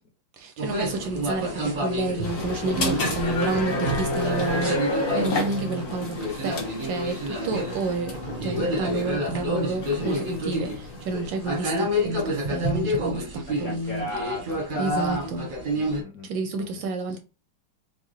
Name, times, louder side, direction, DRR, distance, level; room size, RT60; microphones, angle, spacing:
voice 1, 0.3-8.2 8.4-14.1 14.8-15.5 16.2-17.2, right 3 dB, 75° right, 1.1 m, -30 dB
sound 1, 0.6-16.0, equal, 45° right, 0.6 m, -29 dB
voice 2, 2.1-3.3 10.0-10.2 11.1-11.3 13.5-15.2 15.7-16.3 16.5-16.9, left 2 dB, 70° left, 0.8 m, -38 dB
sound 2, 2.2-11.7, left 2 dB, 45° left, 1.2 m, -31 dB
4.7 x 2.3 x 3.0 m
omnidirectional pair, 2.4 m